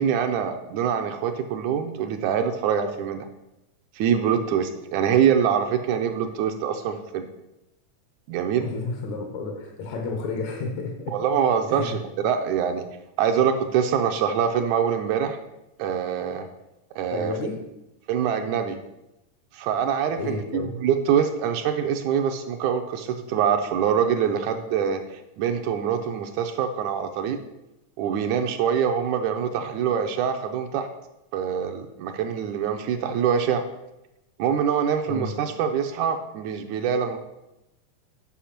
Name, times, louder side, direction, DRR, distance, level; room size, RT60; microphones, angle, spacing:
voice 1, 0.0-3.3 4.0-7.3 8.3-8.7 11.1-12.9 13.2-15.4 15.8-16.5 17.0-17.3 18.1-18.8 19.5-27.4 28.0-30.9 31.3-33.6 34.4-37.2, right 8 dB, 80° right, 5 dB, 1.9 m, -24 dB
voice 2, 8.6-11.2 11.7-12.0 17.1-17.6 20.1-20.7 35.1-35.3, left 4 dB, 70° left, 2 dB, 2.2 m, -31 dB
8.6 x 5.4 x 5.8 m, 0.94 s
omnidirectional pair, 3.6 m